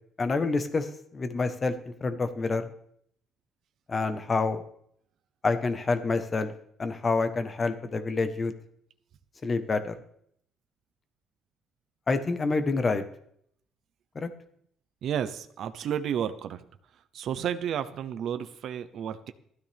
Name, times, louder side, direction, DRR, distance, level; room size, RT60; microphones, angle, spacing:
voice 1, 0.2-0.9 1.1-1.7 2.0-2.6 3.9-4.6 5.4-6.5 6.8-8.5 9.4-9.9 12.1-13.0 14.1-14.3, left 3 dB, 25° left, 9 dB, 1.1 m, -27 dB
voice 2, 15.0-16.6 17.1-19.3, right 9 dB, 55° right, 10 dB, 0.7 m, -32 dB
16.0 x 13.0 x 3.5 m, 0.68 s
cardioid pair, 145°, 0 cm